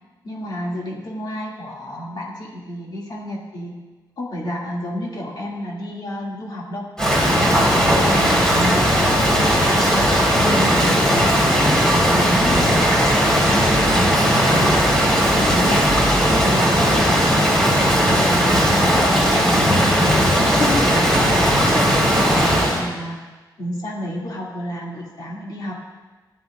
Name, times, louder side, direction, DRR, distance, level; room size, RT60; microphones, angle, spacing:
voice 1, 0.2-3.7 4.2-6.9 7.3-9.0 9.5-11.7 12.1-16.0 16.3-17.4 17.9-19.9 20.4-20.9 21.2-23.2 23.6-25.7, left 1 dB, 60° left, -3 dB, 2.5 m, -30 dB
Rain, 7.0-22.8, equal, 10° left, 4.4 m, -17 dB
19.0 x 12.0 x 2.5 m, 1.2 s
wide cardioid pair, 90°, 8 cm